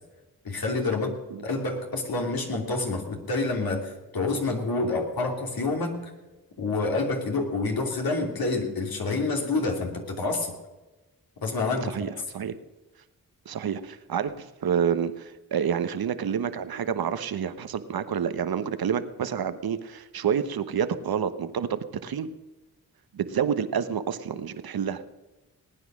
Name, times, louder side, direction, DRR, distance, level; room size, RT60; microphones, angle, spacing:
voice 1, 0.4-6.1 6.6-10.5 11.4-12.0, left 3 dB, 70° left, 2 dB, 3.1 m, -28 dB
voice 2, 11.8-12.5 13.5-22.3 23.1-25.0, right 8 dB, 75° right, 11 dB, 1.1 m, -28 dB
19.0 x 9.5 x 6.2 m, 1.1 s
cardioid pair, 45°, 37 cm